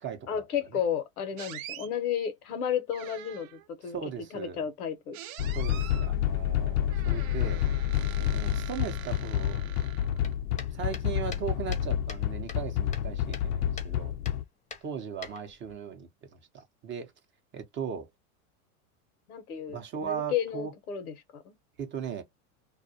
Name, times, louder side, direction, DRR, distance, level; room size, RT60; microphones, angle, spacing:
voice 1, 0.3-4.0 4.3-5.2 19.3-21.5, left 8 dB, 90° left, 0.8 m, -33 dB
sound 1, 1.4-1.9 2.9-3.7 5.1-6.1 6.9-10.3, right 12 dB, 65° right, 0.6 m, -45 dB
voice 2, 3.9-4.6 5.6-7.6 8.2-9.6 10.7-14.1 14.8-17.1 17.5-18.1 19.7-20.7 21.8-22.2, right 7 dB, 25° right, 0.6 m, -38 dB
sound 2, 5.4-14.4, left 11 dB, 60° left, 0.5 m, -29 dB
sound 3, 10.2-12.2 12.5-13.5 13.8-13.9 14.2-14.4 14.7-15.7, left 5 dB, 15° left, 0.6 m, -44 dB
2.3 x 2.2 x 2.6 m
hypercardioid pair, 105°, 43 cm